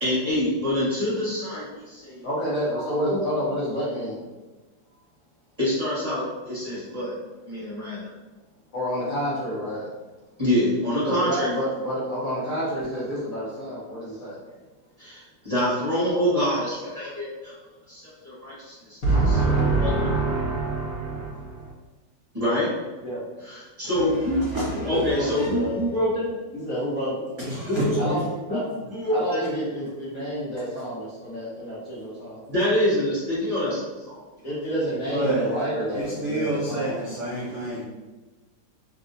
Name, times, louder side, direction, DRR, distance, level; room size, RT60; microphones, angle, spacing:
voice 1, 0.0-2.3 3.1-3.2 5.6-7.1 7.5-8.1 10.4-11.6 15.0-17.5 17.9-19.0 19.3-20.1 22.3-22.7 23.4-24.4 24.8-26.3 27.4-28.0 28.5-28.6 28.9-29.5 32.5-34.2 35.3-35.4 36.6-36.7, left 1 dB, 25° right, -10 dB, 1.0 m, -26 dB
voice 2, 2.2-4.2 8.7-9.9 11.1-14.4 19.0-21.7 23.0-23.2 24.7-25.7 26.5-27.2 28.0-28.2 28.5-28.6 29.1-32.4 34.4-37.0, right 1 dB, 55° left, -8 dB, 1.1 m, -28 dB
voice 3, 23.9-25.6 27.4-28.2 35.0-35.5 35.9-37.8, right 1 dB, 70° right, -6 dB, 0.7 m, -29 dB
3.2 x 2.7 x 2.5 m, 1.2 s
omnidirectional pair, 2.0 m